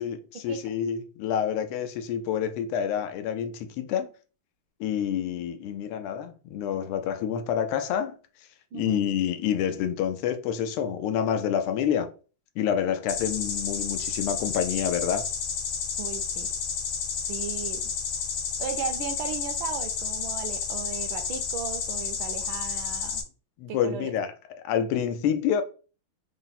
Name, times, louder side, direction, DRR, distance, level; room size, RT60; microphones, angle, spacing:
voice 1, 0.0-4.1 4.8-8.1 8.7-12.1 12.6-15.3 23.6-24.3 24.6-25.6, left 8 dB, 90° left, 1.5 m, -28 dB
voice 2, 8.7-9.0 16.0-16.5 17.2-17.9 18.6-23.2 23.7-24.1, right 7 dB, 75° right, 1.3 m, -36 dB
sound 1, 13.1-23.2, left 6 dB, 70° left, 1.4 m, -31 dB
4.2 x 2.0 x 4.0 m
omnidirectional pair, 2.4 m